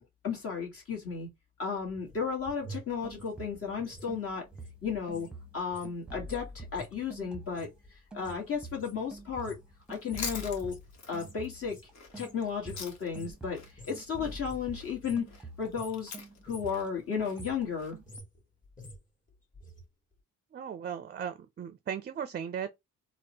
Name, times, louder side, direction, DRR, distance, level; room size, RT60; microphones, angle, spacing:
voice 1, 0.2-1.3 1.6-4.4 4.8-5.3 5.5-9.5 9.9-10.7 11.1-11.8 12.2-15.3 15.6-16.1 16.4-18.0, left 6 dB, 50° left, 1.4 m, -34 dB
sound 1, 1.8-5.3 5.6-14.1 14.4-15.4 15.7-16.1 16.3-16.8 17.2-19.8 20.1-20.2, right 1 dB, 25° left, 1.3 m, -50 dB
sound 2, 3.0-3.8 4.1-7.8 8.1-15.9 16.1-18.2, right 1 dB, 5° right, 0.8 m, -47 dB
Chewing mastication, 9.8-13.3 13.5-17.9, left 5 dB, 65° left, 1.2 m, -44 dB
voice 2, 20.5-22.7, right 8 dB, 35° right, 0.4 m, -37 dB
3.5 x 2.1 x 2.8 m
cardioid pair, 90°, 30 cm